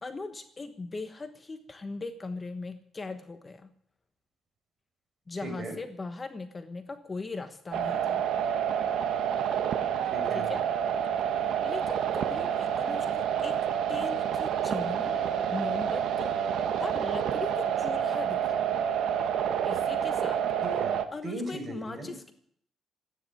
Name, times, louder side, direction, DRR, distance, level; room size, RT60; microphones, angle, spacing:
voice 1, 0.0-3.7 5.3-8.2 10.3-10.6 11.6-15.2 15.5-16.3 16.8-18.7 19.6-20.5 21.1-22.3, left 3 dB, 30° left, 8 dB, 1.2 m, -39 dB
voice 2, 5.4-5.8 10.0-10.5 20.6-21.0 21.2-22.3, right 1 dB, 35° right, 4 dB, 5.8 m, -38 dB
sound 1, 7.7-21.1, right 8 dB, 75° right, 1.2 m, -28 dB
14.0 x 10.0 x 9.7 m, 0.67 s
cardioid pair, 90°, 0 cm